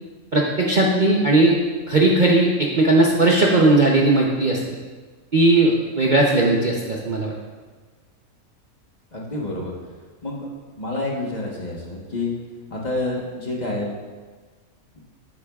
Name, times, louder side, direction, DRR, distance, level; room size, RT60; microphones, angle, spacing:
voice 1, 0.3-1.5 1.9-4.6 5.3-7.3, right 2 dB, 45° right, -2 dB, 0.7 m, -17 dB
voice 2, 9.1-9.7 10.2-10.4 10.7-12.3 12.7-13.9, left 2 dB, 30° left, -3 dB, 1.2 m, -28 dB
10.0 x 8.5 x 2.4 m, 1.4 s
omnidirectional pair, 1.5 m